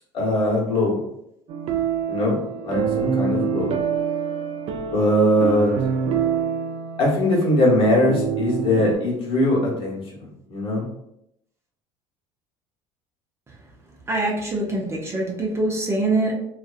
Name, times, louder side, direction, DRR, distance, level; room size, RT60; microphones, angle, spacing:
voice 1, 0.1-0.9 2.1-3.7 4.9-5.7 7.0-10.0 10.5-10.9, left 1 dB, 50° left, -3 dB, 1.2 m, -20 dB
sound 1, 1.5-8.9, right 7 dB, 55° right, 0.4 m, -26 dB
voice 2, 14.1-16.3, right 2 dB, 20° right, -3 dB, 0.7 m, -24 dB
2.6 x 2.4 x 2.4 m, 0.77 s
supercardioid pair, 105°, 13 cm